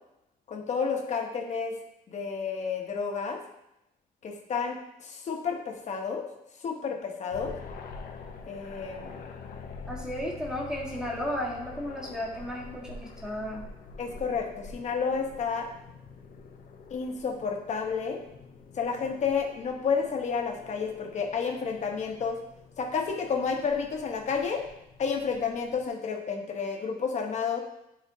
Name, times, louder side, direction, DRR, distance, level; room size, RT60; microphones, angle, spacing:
voice 1, 0.5-1.7 2.1-3.4 4.2-6.2 6.6-7.5 8.5-9.2 14.0-15.7 16.9-18.2 18.8-22.4 22.8-24.6 25.0-27.6, left 5 dB, 50° left, 2 dB, 1.1 m, -30 dB
sound 1, 7.3-25.9, left 4 dB, 65° left, 0.7 m, -46 dB
voice 2, 9.9-13.7, left 1 dB, 5° right, -3 dB, 1.5 m, -34 dB
10.5 x 4.3 x 2.8 m, 0.84 s
cardioid pair, 145°, 16 cm